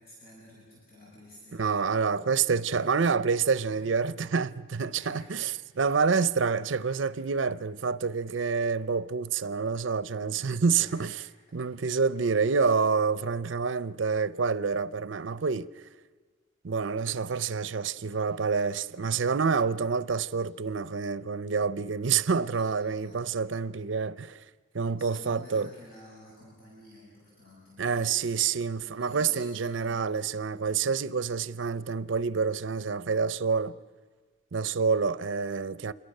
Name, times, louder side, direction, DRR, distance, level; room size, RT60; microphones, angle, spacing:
voice 1, 0.0-1.9 2.7-3.0 3.7-3.9 4.9-5.5 10.7-11.3 22.6-23.3 25.0-28.4 28.8-30.2 34.7-34.9, left 1 dB, 50° left, 7.1 m, -51 dB
voice 2, 1.5-5.5 5.8-11.2 11.5-15.7 16.6-24.4 24.7-25.7 27.8-33.7 34.5-35.9, right 5 dB, 70° right, 0.6 m, -27 dB
27.5 x 22.0 x 6.6 m
head